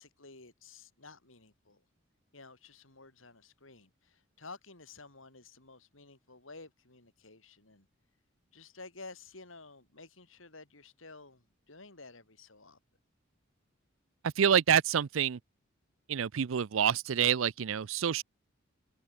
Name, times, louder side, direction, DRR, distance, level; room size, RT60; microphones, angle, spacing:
voice 1, 0.0-1.8 2.3-7.9 8.5-12.8, left 3 dB, 75° left, 4.9 m, -52 dB
voice 2, 14.2-15.4 16.1-18.2, right 8 dB, 75° right, 0.5 m, -27 dB
open air
head